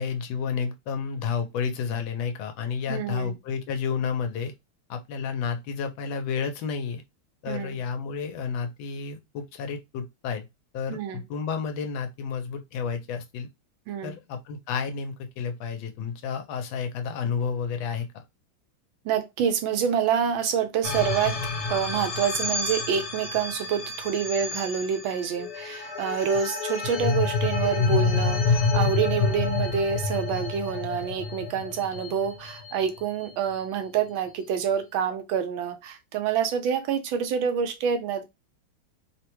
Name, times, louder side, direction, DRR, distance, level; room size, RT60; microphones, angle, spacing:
voice 1, 0.0-4.5 4.9-7.0 7.4-10.5 10.7-13.5 14.0-18.1, left 6 dB, 80° left, 1.4 m, -31 dB
voice 2, 2.9-3.4 7.5-7.8 10.9-11.2 13.9-14.2 19.0-21.3 21.7-38.2, right 7 dB, 85° right, 1.4 m, -27 dB
sound 1, 20.8-33.3, left 4 dB, 65° left, 1.3 m, -28 dB
3.6 x 2.1 x 2.9 m
omnidirectional pair, 2.1 m